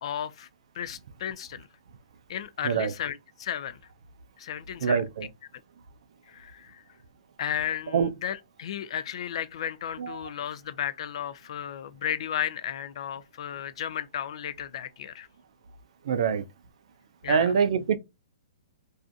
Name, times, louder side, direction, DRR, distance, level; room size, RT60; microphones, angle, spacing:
voice 1, 0.0-0.5 0.7-1.7 2.3-3.8 4.4-5.0 6.3-6.8 7.4-15.3 17.2-17.5, left 10 dB, 60° left, 0.3 m, -34 dB
voice 2, 4.8-5.3 7.9-8.1 10.0-10.2 16.0-16.4 17.3-18.0, right 6 dB, 65° right, 0.4 m, -24 dB
2.5 x 2.4 x 2.4 m
hypercardioid pair, 145°, 3 cm